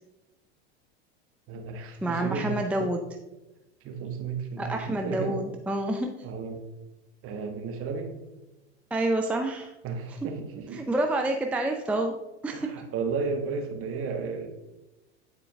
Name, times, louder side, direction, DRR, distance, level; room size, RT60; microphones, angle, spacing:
voice 1, 1.5-2.9 3.8-5.4 6.2-6.6 7.2-8.2 9.8-10.8 12.5-14.5, right 4 dB, 40° right, 4 dB, 1.4 m, -33 dB
voice 2, 2.0-3.0 4.6-6.2 8.9-9.7 10.7-12.1 12.4-12.7, right 1 dB, 5° right, 3 dB, 0.5 m, -28 dB
9.3 x 4.5 x 3.5 m, 0.98 s
hypercardioid pair, 95°, 34 cm